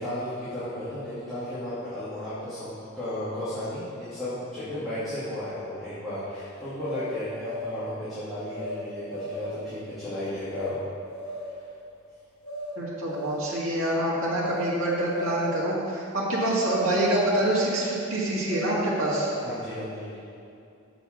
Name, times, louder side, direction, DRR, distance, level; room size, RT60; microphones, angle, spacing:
voice 1, 0.0-10.8 11.4-11.5 19.4-20.1, left 1 dB, ahead, -14 dB, 2.4 m, -34 dB
sound 1, 6.8-7.9 8.5-8.8 9.1-9.7 10.5-10.7 11.1-11.6 12.4-12.7 13.0-13.7 14.4-14.7 15.0-15.7 16.6-16.8 17.1-17.9 18.5-19.5, left 1 dB, 85° left, 2.2 m, -35 dB
voice 2, 12.8-19.3, right 1 dB, 80° right, -7 dB, 2.1 m, -26 dB
7.0 x 6.0 x 7.2 m, 2.5 s
head